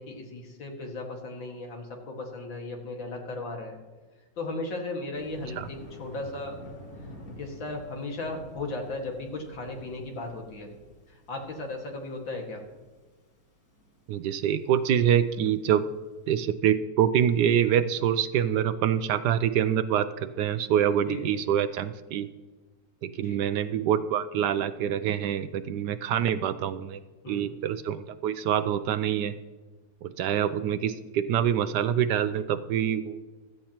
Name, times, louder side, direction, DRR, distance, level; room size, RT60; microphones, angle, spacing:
voice 1, 0.0-3.8 4.4-6.6 7.4-10.7 11.1-12.6 21.1-21.3 23.2-23.4 27.2-27.5, left 2 dB, 85° left, 1 dB, 2.6 m, -36 dB
Thunder, 5.1-16.3, equal, 50° left, 2.3 m, -49 dB
voice 2, 14.1-15.8 16.3-22.3 23.0-27.0 27.3-29.3 30.0-33.2, right 9 dB, 75° right, 12 dB, 1.1 m, -25 dB
15.5 x 13.0 x 2.9 m, 1.3 s
omnidirectional pair, 2.0 m